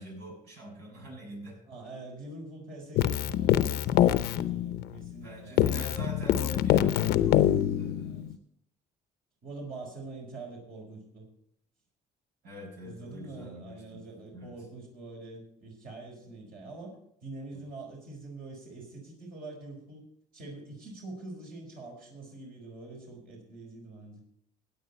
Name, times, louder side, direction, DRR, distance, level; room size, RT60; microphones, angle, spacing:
voice 1, 0.0-1.6 5.2-7.4 7.8-8.3 12.4-14.0 14.3-14.5 17.5-17.6, right 1 dB, 80° right, 0 dB, 6.5 m, -44 dB
voice 2, 1.7-6.5 8.0-8.4 9.4-11.3 12.8-16.9 17.2-20.1 20.3-24.2, right 2 dB, 55° right, -1 dB, 4.7 m, -45 dB
Keyboard (musical), 3.0-5.2 5.6-8.3, left 12 dB, 75° left, 0.7 m, -25 dB
16.5 x 9.2 x 4.3 m, 0.73 s
cardioid pair, 110°, 17 cm